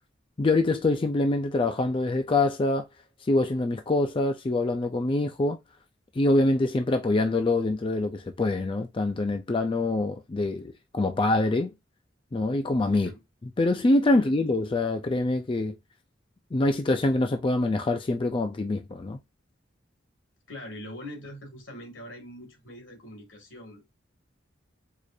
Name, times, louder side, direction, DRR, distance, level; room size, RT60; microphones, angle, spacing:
voice 1, 0.4-2.8 3.3-5.6 6.2-11.7 12.3-13.1 13.6-15.8 16.5-19.2, left 2 dB, 30° left, 0.4 m, -25 dB
voice 2, 20.5-23.8, left 1 dB, 85° left, 2.0 m, -43 dB
4.7 x 2.5 x 2.6 m
head